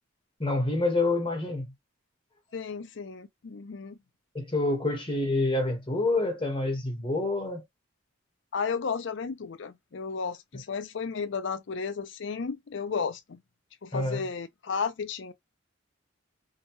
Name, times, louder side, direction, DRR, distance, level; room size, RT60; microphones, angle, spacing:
voice 1, 0.4-1.6 4.3-7.6 13.9-14.2, left 2 dB, 25° left, 1.2 m, -27 dB
voice 2, 2.5-4.0 8.5-13.4 13.8-15.3, left 5 dB, 65° left, 0.5 m, -33 dB
2.8 x 2.2 x 2.9 m
head